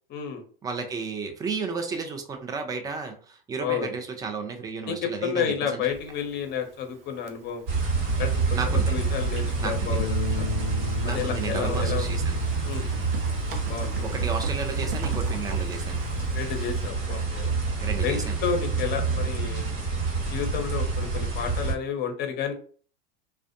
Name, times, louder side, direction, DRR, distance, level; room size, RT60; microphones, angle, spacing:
voice 1, 0.1-0.4 3.6-3.9 4.9-7.6 8.2-8.4 8.9-10.5 11.0-12.1 12.6-12.9 13.7-14.1 16.3-17.5 18.0-19.7 20.1-22.5, left 7 dB, 35° left, 5 dB, 0.7 m, -31 dB
voice 2, 0.6-5.8 8.5-8.9 9.6-10.0 11.0-12.4 14.0-16.0 17.8-18.4, right 5 dB, 15° right, 5 dB, 0.4 m, -33 dB
Typing, 5.8-16.9, right 6 dB, 75° right, 0.6 m, -41 dB
sound 1, 7.7-21.7, right 4 dB, 55° right, 1.2 m, -27 dB
Bass guitar, 10.0-16.2, left 13 dB, 70° left, 0.4 m, -37 dB
2.4 x 2.2 x 2.5 m, 0.43 s
hypercardioid pair, 100°, 29 cm